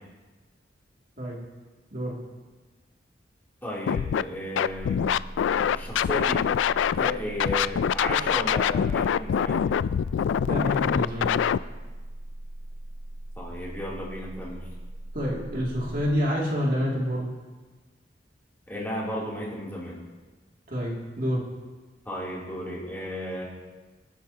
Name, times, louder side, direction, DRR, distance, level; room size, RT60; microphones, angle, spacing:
voice 1, 3.6-5.0 5.6-6.5 7.0-9.6 13.4-14.6 18.7-20.0 22.0-23.4, equal, 10° left, -6 dB, 3.0 m, -34 dB
Scratching (performance technique), 3.9-4.2 4.6-7.1 7.4-11.6, left 8 dB, 90° left, 0.3 m, -24 dB
sound 1, 4.7-16.1, right 1 dB, 85° right, 4.9 m, -40 dB
voice 2, 10.4-11.3 15.1-17.3 20.7-21.4, equal, 50° right, -3 dB, 2.5 m, -28 dB
27.5 x 9.5 x 2.9 m, 1.3 s
head